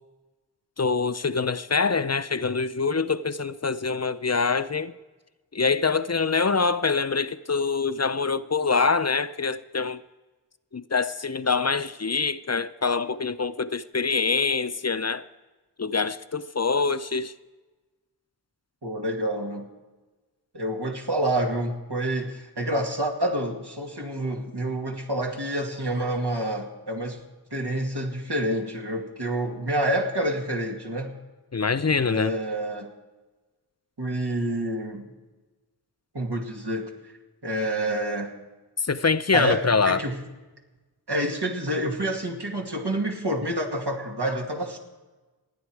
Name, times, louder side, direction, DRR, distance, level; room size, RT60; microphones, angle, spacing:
voice 1, 0.8-4.9 5.5-10.0 10.7-15.2 15.8-17.3 31.5-32.3 38.8-40.0, left 4 dB, 40° left, 0.5 m, -25 dB
voice 2, 18.8-19.7 20.5-27.2 27.5-31.1 32.0-32.9 34.0-35.1 36.1-37.1 37.4-38.3 39.3-40.2 41.1-44.8, right 1 dB, 85° right, 2.4 m, -28 dB
28.0 x 9.5 x 4.7 m
wide cardioid pair, 45°, 39 cm